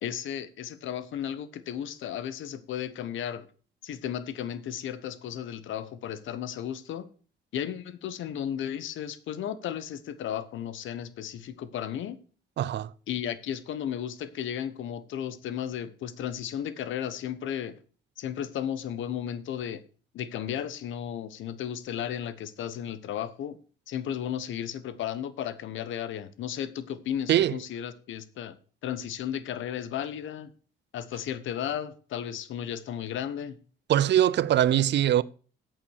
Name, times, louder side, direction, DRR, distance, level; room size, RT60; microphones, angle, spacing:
voice 1, 0.0-3.5 3.8-7.1 7.5-12.2 13.1-17.7 18.2-19.8 20.1-23.6 23.9-28.6 28.8-30.5 30.9-33.6, left 9 dB, 75° left, 1.1 m, -34 dB
voice 2, 12.6-12.9 27.3-27.5 33.9-35.2, right 11 dB, 60° right, 0.5 m, -22 dB
8.6 x 7.3 x 6.4 m
cardioid pair, 90°, 20 cm